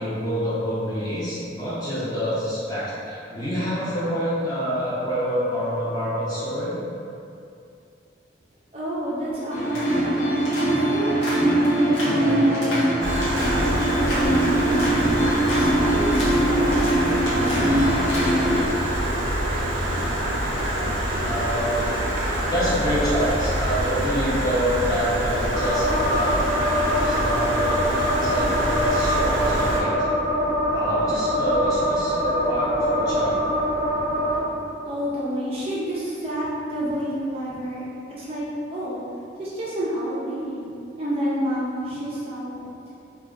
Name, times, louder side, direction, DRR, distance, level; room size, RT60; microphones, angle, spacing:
voice 1, 0.0-6.8 21.2-21.8 22.4-30.0 30.7-33.4, equal, 20° left, -10 dB, 0.6 m, -27 dB
voice 2, 8.7-10.3 10.6-15.1 15.5-17.7 34.9-37.8 38.2-38.5 38.7-39.0 39.4-40.7 41.0-42.7, equal, 30° right, -8 dB, 0.4 m, -29 dB
sound 1, 9.5-18.6, right 1 dB, 75° left, 0.6 m, -22 dB
Stream, 13.0-29.8, right 1 dB, 90° right, 0.5 m, -26 dB
sound 2, 25.5-34.4, equal, 15° right, 0.7 m, -24 dB
2.6 x 2.2 x 2.3 m, 2.6 s
head